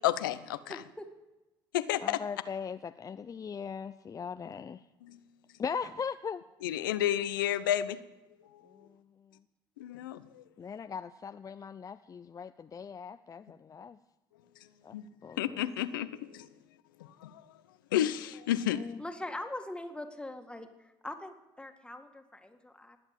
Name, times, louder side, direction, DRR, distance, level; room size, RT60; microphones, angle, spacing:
voice 1, 0.0-0.8 1.7-2.2 5.0-5.2 6.6-8.0 9.8-10.4 14.9-15.0 15.4-16.5 17.0-17.4 17.9-18.8, left 12 dB, 90° left, 13 dB, 0.7 m, -31 dB
voice 2, 0.7-1.1 6.6-7.1 19.0-23.0, left 1 dB, 10° left, 6 dB, 2.0 m, -42 dB
voice 3, 2.0-4.8 5.6-6.4 8.7-9.0 10.6-14.0 14.8-14.9 15.2-15.6 18.7-19.0, left 6 dB, 30° left, 10 dB, 0.5 m, -39 dB
20.0 x 8.0 x 7.4 m, 1.0 s
hypercardioid pair, 65°, 11 cm